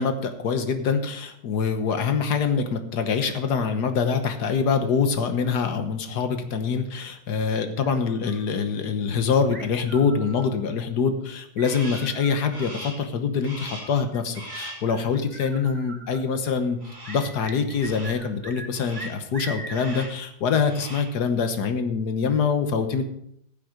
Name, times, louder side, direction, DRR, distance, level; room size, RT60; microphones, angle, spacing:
voice 1, 0.0-16.8 17.1-23.0, left 5 dB, 75° left, 8 dB, 1.7 m, -25 dB
sound 1, 7.8-8.6 9.5-10.7 11.6-12.8 13.8-16.2 17.0-18.7 18.9-20.1, right 2 dB, 45° right, 3.0 m, -41 dB
Crow, 11.6-12.2 12.5-13.1 13.4-14.0 14.3-14.9 16.8-17.3 17.7-18.2 18.7-19.2 19.7-20.2 20.5-21.2, equal, 25° right, 3.1 m, -41 dB
14.5 x 7.7 x 5.1 m, 0.72 s
omnidirectional pair, 1.8 m